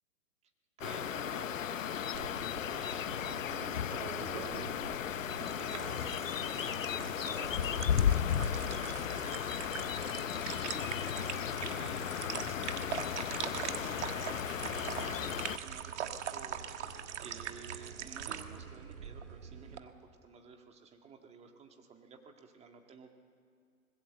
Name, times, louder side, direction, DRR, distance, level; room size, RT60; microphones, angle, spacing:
sound 1, 0.8-15.6, left 9 dB, 60° left, 0.9 m, -35 dB
voice 1, 0.8-20.0 20.2-23.1, right 5 dB, 15° right, 4 dB, 1.9 m, -52 dB
sound 2, 2.1-19.8, right 8 dB, 50° right, 1.6 m, -43 dB
25.0 x 20.5 x 7.7 m, 2.2 s
figure-of-eight pair, 115°, 43 cm